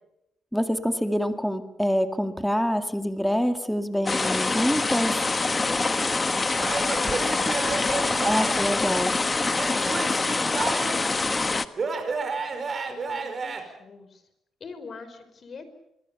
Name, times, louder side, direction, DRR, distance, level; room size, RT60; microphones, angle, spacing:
voice 1, 0.5-5.2 8.2-9.1, equal, ahead, 7 dB, 2.1 m, -26 dB
sound 1, 4.1-11.7, left 3 dB, 25° left, 1.4 m, -25 dB
Male speech man speaking / Yell / Laughter, 6.6-8.7 9.4-11.1 11.8-13.6, right 4 dB, 40° right, 5.5 m, -31 dB
voice 2, 12.5-14.2 14.6-15.6, left 4 dB, 45° left, 11 dB, 5.0 m, -45 dB
26.5 x 23.0 x 7.0 m, 0.82 s
cardioid pair, 90°, 0 cm